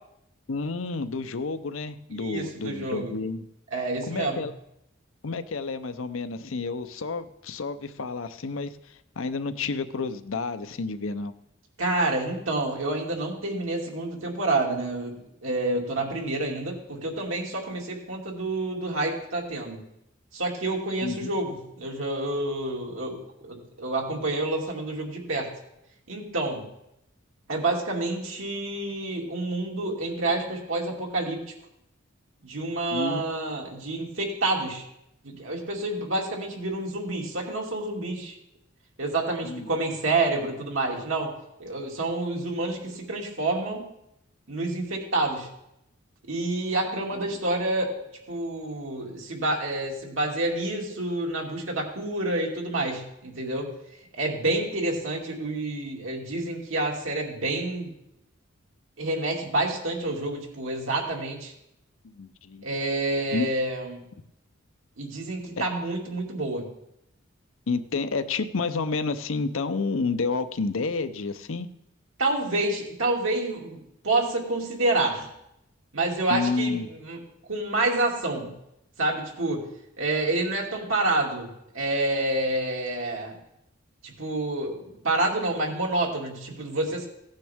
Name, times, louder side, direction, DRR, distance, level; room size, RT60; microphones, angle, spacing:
voice 1, 0.5-3.4 4.1-4.5 5.2-8.8 9.2-11.3 21.0-21.3 32.9-33.2 39.4-39.7 47.1-47.2 62.1-62.7 63.3-63.5 67.7-71.7 76.3-76.9, left 4 dB, 80° left, 11 dB, 0.7 m, -30 dB
voice 2, 2.2-3.1 3.7-4.4 11.8-15.2 15.4-19.8 20.3-25.5 26.1-26.7 27.5-31.4 32.4-34.8 35.2-38.4 39.0-41.3 41.6-43.9 44.5-45.5 46.3-47.9 48.3-53.7 54.1-57.9 59.0-61.5 62.6-64.0 65.0-66.7 72.2-75.3 75.9-77.2 77.5-78.5 79.0-79.6 80.0-83.4 84.0-87.1, right 2 dB, 80° right, -1 dB, 2.5 m, -28 dB
16.5 x 9.0 x 3.6 m, 0.81 s
head